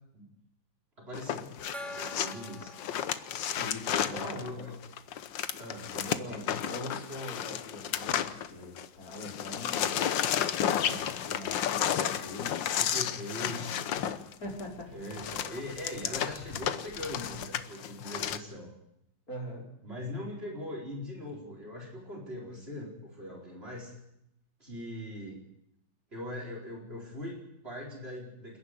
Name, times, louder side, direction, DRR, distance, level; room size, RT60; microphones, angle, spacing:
voice 1, 1.0-2.8 4.0-4.7 5.6-6.4 12.8-14.0 14.9-18.7 19.8-23.9 24.6-25.4 26.1-28.6, left 1 dB, 30° right, -1 dB, 4.7 m, -41 dB
sound 1, 1.1-8.9 9.1-18.4, left 9 dB, 80° left, 1.7 m, -32 dB
Gong, 1.7-5.0, left 1 dB, ahead, 2.1 m, -46 dB
voice 2, 3.6-4.7 5.9-10.0 10.7-12.7 14.4-15.0 19.3-19.7, left 1 dB, 50° left, -1 dB, 5.6 m, -43 dB
28.0 x 10.5 x 9.7 m, 0.80 s
omnidirectional pair, 2.0 m